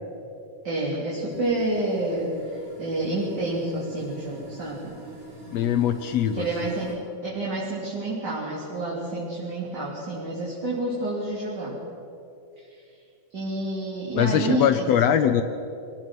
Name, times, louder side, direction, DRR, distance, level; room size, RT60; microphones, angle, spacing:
voice 1, 0.6-4.9 6.3-11.8 12.6-12.7 13.3-15.0, right 2 dB, 30° right, -6 dB, 3.5 m, -29 dB
sound 1, 1.3-7.0, right 4 dB, 85° right, 5.7 m, -45 dB
voice 2, 5.5-6.5 14.2-15.4, left 9 dB, 75° left, 9 dB, 1.5 m, -21 dB
25.0 x 18.0 x 6.2 m, 2.7 s
omnidirectional pair, 3.7 m